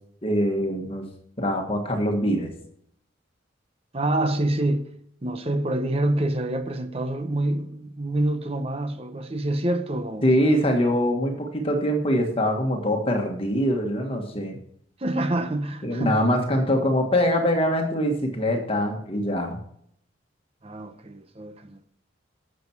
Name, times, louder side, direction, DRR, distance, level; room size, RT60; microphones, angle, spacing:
voice 1, 0.2-1.1 1.4-2.5 10.2-14.6 15.8-19.6, equal, 30° left, 1.6 m, -23 dB
voice 2, 3.9-4.9 5.2-10.3 15.0-16.2 20.6-21.9, right 1 dB, 30° right, 0.8 m, -26 dB
11.5 x 7.7 x 4.6 m
head